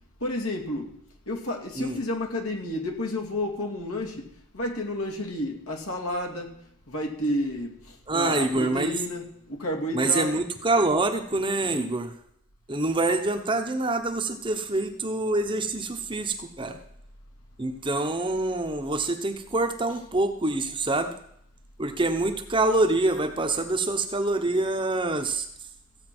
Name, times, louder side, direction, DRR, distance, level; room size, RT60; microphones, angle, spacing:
voice 1, 0.2-0.9 1.3-6.6 6.9-10.4, left 1 dB, 75° left, 2 dB, 2.5 m, -31 dB
voice 2, 8.1-9.0 9.9-12.1 12.7-16.8 17.6-21.2 21.8-25.5, right 2 dB, 20° right, 6 dB, 0.9 m, -26 dB
15.0 x 8.7 x 6.1 m, 0.70 s
head